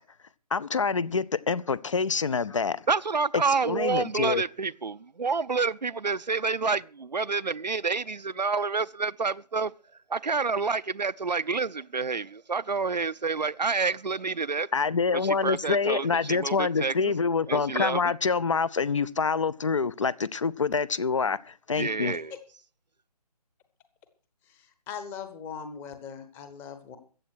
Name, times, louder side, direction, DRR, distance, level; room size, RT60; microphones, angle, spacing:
voice 1, 0.5-2.8 3.3-4.4 14.7-22.1, left 5 dB, 45° left, 0.6 m, -26 dB
voice 2, 2.9-9.7 10.1-14.7 15.1-17.1 17.5-18.0 21.8-22.4, right 4 dB, 80° right, 0.6 m, -28 dB
voice 3, 24.5-27.0, left 7 dB, 10° left, 0.9 m, -40 dB
14.5 x 8.6 x 6.2 m
figure-of-eight pair, 145°, 21 cm